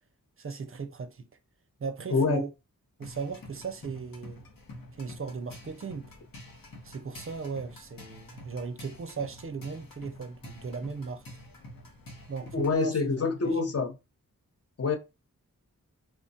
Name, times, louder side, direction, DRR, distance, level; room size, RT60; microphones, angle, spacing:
voice 1, 0.4-1.3 1.8-2.5 3.0-4.4 4.9-6.1 6.8-11.3 12.3-13.0 13.4-13.6, right 5 dB, 40° right, 0.4 m, -37 dB
voice 2, 2.1-2.4 12.5-14.0 14.8-15.0, left 4 dB, 50° left, 0.5 m, -26 dB
sound 1, 3.0-12.8, left 1 dB, 85° left, 0.8 m, -48 dB
3.1 x 2.1 x 2.7 m
wide cardioid pair, 65°, 33 cm